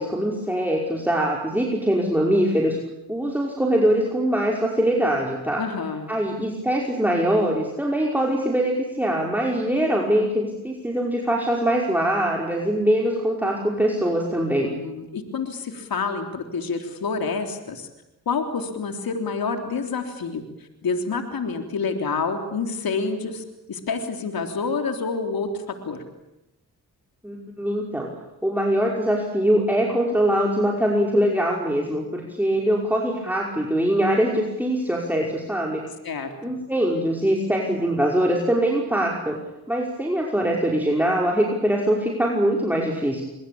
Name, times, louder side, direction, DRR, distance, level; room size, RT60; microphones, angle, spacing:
voice 1, 0.0-2.8 3.1-5.6 6.1-14.7 27.2-28.1 28.4-35.8 36.4-39.4 39.7-43.2, right 1 dB, 5° right, -1 dB, 5.5 m, -22 dB
voice 2, 5.6-6.1 14.6-17.9 18.3-26.0 36.0-36.5, left 4 dB, 65° left, 5 dB, 3.6 m, -28 dB
24.0 x 23.5 x 8.7 m, 0.93 s
supercardioid pair, 55°, 38 cm